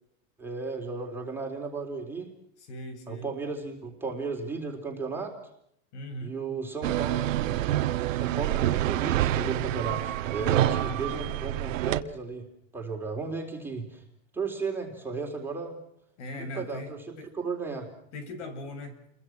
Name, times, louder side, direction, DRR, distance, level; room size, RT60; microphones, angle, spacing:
voice 1, 0.4-2.3 3.1-5.4 6.2-7.6 8.1-12.4 12.7-14.0 14.3-15.8 16.3-17.0 17.3-17.9, right 4 dB, 5° right, 0 dB, 3.7 m, -34 dB
voice 2, 2.6-3.3 5.9-6.4 10.6-11.2 16.2-16.9 17.2-17.3 18.1-19.0, left 1 dB, 60° left, 9 dB, 7.8 m, -39 dB
sound 1, 6.8-12.0, right 14 dB, 70° right, 1.6 m, -27 dB
29.5 x 23.0 x 6.1 m, 0.72 s
supercardioid pair, 165°, 40 cm